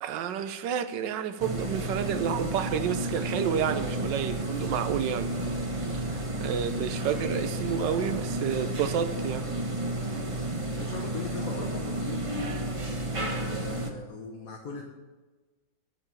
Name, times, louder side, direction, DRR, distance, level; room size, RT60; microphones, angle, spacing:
voice 1, 0.0-5.3 6.1-9.5, right 8 dB, 70° right, 1.2 m, -30 dB
sound 1, 1.4-13.9, right 1 dB, 35° right, 0.5 m, -32 dB
voice 2, 10.7-12.3 13.1-14.8, left 5 dB, 50° left, 1.3 m, -40 dB
13.5 x 4.7 x 7.2 m
omnidirectional pair, 2.2 m